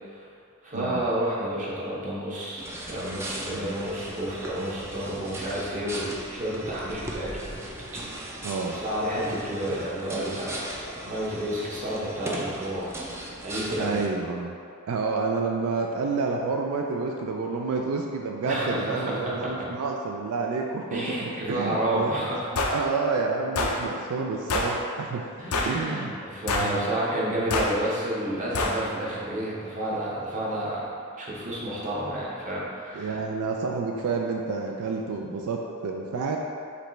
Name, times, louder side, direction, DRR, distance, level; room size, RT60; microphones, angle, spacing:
voice 1, 0.6-7.6 7.9-8.2 8.7-13.0 13.4-14.0 18.4-19.7 20.9-22.6 25.4-33.2, right 1 dB, 35° right, -6 dB, 0.9 m, -30 dB
sound 1, 2.6-14.1, right 1 dB, 10° right, 0.4 m, -38 dB
voice 2, 8.4-8.8 13.8-14.5 14.9-22.3 22.7-25.3 25.6-26.2 26.5-26.9 32.9-36.4, right 4 dB, 85° right, 1 dB, 0.4 m, -29 dB
sound 2, 22.6-22.8 23.6-23.8 24.5-24.7 25.5-25.8 26.5-26.8 27.5-27.7 28.5-28.8, left 2 dB, 90° left, 0.5 m, -25 dB
5.0 x 3.3 x 3.1 m, 2.4 s
head